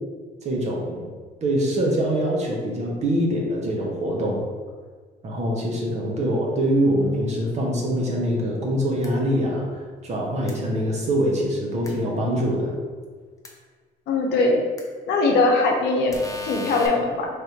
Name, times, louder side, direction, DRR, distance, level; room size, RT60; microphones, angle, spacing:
voice 1, 0.4-1.1 1.4-4.4 5.2-12.7, equal, 40° right, -1 dB, 1.0 m, -24 dB
sound 1, 9.0-9.1 10.5-10.6 11.8-11.9 13.4-13.5 14.8-14.9 16.1-16.9, left 2 dB, 20° left, 0.6 m, -36 dB
voice 2, 14.1-14.6 15.1-17.3, left 3 dB, 80° left, 0 dB, 0.8 m, -21 dB
3.3 x 2.6 x 4.5 m, 1.5 s
cardioid pair, 110°, 17 cm